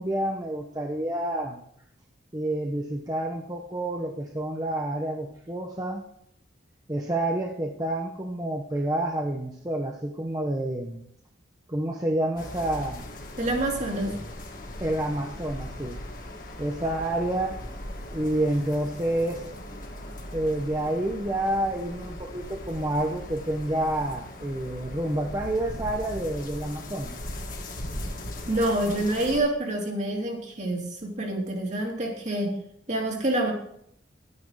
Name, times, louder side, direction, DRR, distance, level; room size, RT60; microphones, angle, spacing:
voice 1, 0.0-1.6 2.3-6.0 6.9-11.0 11.7-13.0 14.8-16.0 16.6-17.6 18.1-19.4 20.3-27.2, right 1 dB, 20° right, 1 dB, 0.9 m, -28 dB
sound 1, 12.4-29.4, left 1 dB, 45° left, 1.8 m, -39 dB
voice 2, 13.4-14.1 28.5-32.6 32.9-33.5, right 1 dB, 40° right, 0 dB, 2.5 m, -27 dB
11.5 x 9.7 x 4.8 m, 0.70 s
head